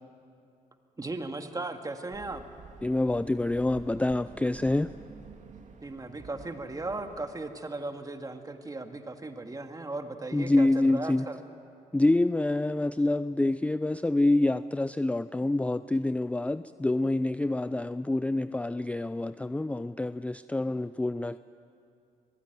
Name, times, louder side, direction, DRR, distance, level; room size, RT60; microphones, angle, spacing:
voice 1, 1.0-2.4 5.8-11.4, right 2 dB, 25° right, 6 dB, 2.0 m, -37 dB
sound 1, 2.1-7.4, right 5 dB, 55° right, 2.4 m, -49 dB
voice 2, 2.8-4.9 10.3-11.3 11.9-21.4, left 2 dB, 10° left, 14 dB, 0.4 m, -27 dB
23.0 x 16.0 x 9.2 m, 2.5 s
supercardioid pair, 65°, 14 cm